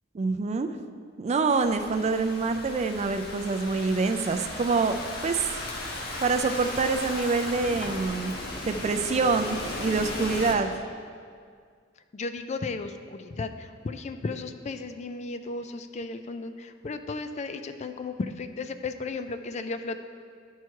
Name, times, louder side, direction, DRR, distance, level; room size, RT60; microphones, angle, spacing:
voice 1, 0.1-0.7 1.2-5.0 5.2-5.5 6.2-8.3 8.7-10.7, right 4 dB, 35° right, 8 dB, 0.4 m, -26 dB
Thunderstorm / Rain, 1.5-10.5, left 1 dB, 55° left, 1.1 m, -36 dB
voice 2, 12.1-20.0, left 3 dB, 35° left, 9 dB, 0.4 m, -35 dB
11.5 x 4.6 x 4.6 m, 2.1 s
head